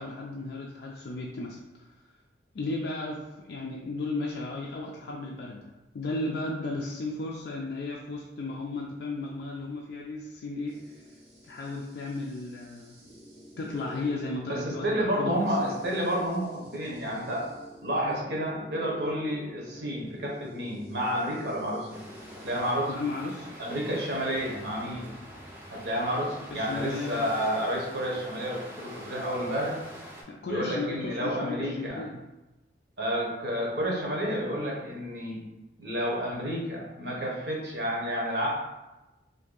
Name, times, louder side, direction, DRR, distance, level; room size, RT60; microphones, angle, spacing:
voice 1, 0.0-1.9 2.5-11.0 11.4-13.0 13.6-15.7 22.9-23.5 26.5-27.3 30.3-32.2, left 2 dB, 55° left, -2 dB, 0.3 m, -35 dB
sound 1, 10.7-22.7, equal, 85° right, 1.1 m, -48 dB
voice 2, 14.5-17.5 17.8-22.0 22.3-22.9 23.6-25.1 25.7-29.8 30.4-32.0 33.0-35.4 35.8-38.5, equal, 60° right, -2 dB, 0.8 m, -30 dB
sound 2, 21.9-30.2, equal, 10° right, 0.5 m, -45 dB
2.6 x 2.6 x 3.7 m, 1.0 s
head